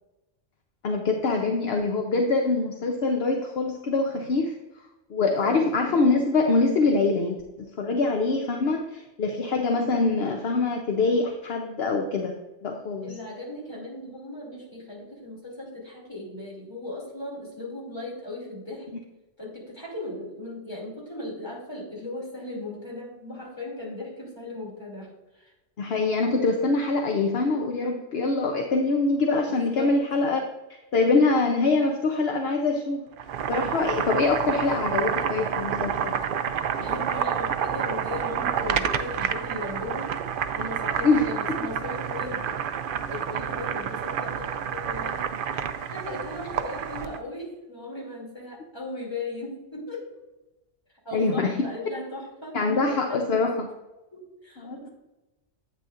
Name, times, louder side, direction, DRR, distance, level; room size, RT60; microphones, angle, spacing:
voice 1, 0.8-4.6 5.1-12.3 12.6-13.2 25.8-30.4 30.9-33.0 33.5-36.2 41.0-41.6 51.1-51.6 52.5-53.7 54.6-54.9, left 3 dB, 60° left, 3 dB, 1.0 m, -24 dB
voice 2, 5.2-5.6 13.0-18.9 19.4-25.5 29.5-30.4 36.6-40.1 40.5-42.6 43.0-45.3 45.9-50.1 51.0-53.5 54.1-54.9, left 2 dB, 20° left, -4 dB, 2.9 m, -37 dB
Boiling, 33.1-47.2, right 8 dB, 60° right, 0.6 m, -29 dB
9.1 x 8.8 x 2.5 m, 1.0 s
omnidirectional pair, 1.2 m